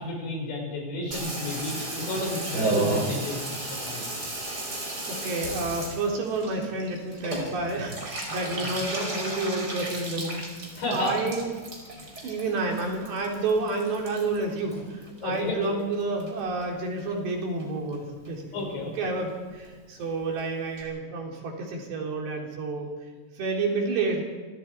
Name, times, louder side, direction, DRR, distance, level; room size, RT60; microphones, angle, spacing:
voice 1, 0.0-3.6 3.8-4.2 8.6-8.7 10.8-11.3 12.2-12.4 15.2-15.7 18.5-18.9, left 2 dB, 75° left, 0 dB, 7.5 m, -32 dB
Water tap faucet / Bathtub (filling or washing), 1.1-15.7 15.9-16.7 17.0-17.1 17.3-17.4 17.6-18.0 18.3-18.4 18.6-18.7 18.9-19.0 19.3-19.4 19.6-19.7 20.0-20.1 20.4-20.5 20.8-20.9, right 2 dB, 20° right, 4.9 m, -34 dB
voice 2, 5.1-10.4 10.9-11.5 12.2-14.8 15.2-18.4 19.0-22.9 23.4-24.2, right 3 dB, 65° right, 0 dB, 5.7 m, -29 dB
27.5 x 25.0 x 4.7 m, 1.4 s
omnidirectional pair, 5.4 m